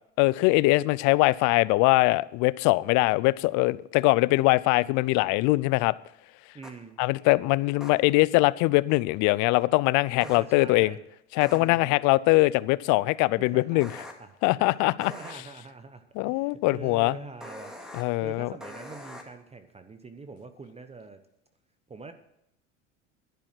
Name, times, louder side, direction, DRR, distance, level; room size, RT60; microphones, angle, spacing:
voice 1, 0.2-6.0 7.0-10.9 11.4-13.9 14.4-15.1 16.2-17.2 17.9-18.5, left 21 dB, 55° left, 0.6 m, -22 dB
voice 2, 4.6-5.0 6.5-7.0 10.2-11.0 11.4-12.0 13.4-17.7 18.2-21.2 21.9-22.1, right 4 dB, 15° right, 0.9 m, -44 dB
sound 1, 6.6-6.7 7.8-7.9 10.2-10.4 11.4-11.6 13.8-14.1 15.0-15.3 17.4-18.0 18.6-19.2, left 1 dB, ahead, 2.3 m, -42 dB
10.5 x 10.5 x 6.0 m
hypercardioid pair, 85°, 36 cm